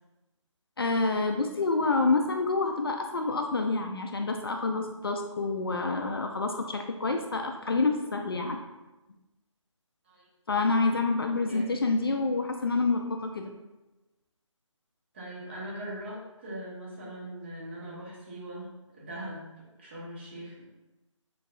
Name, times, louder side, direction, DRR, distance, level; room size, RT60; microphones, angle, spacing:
voice 1, 0.8-8.6 10.5-13.5, left 3 dB, 45° left, 4 dB, 0.4 m, -28 dB
voice 2, 15.1-20.7, right 1 dB, 20° right, -5 dB, 0.8 m, -41 dB
6.9 x 2.7 x 2.5 m, 1.0 s
figure-of-eight pair, 165°, 17 cm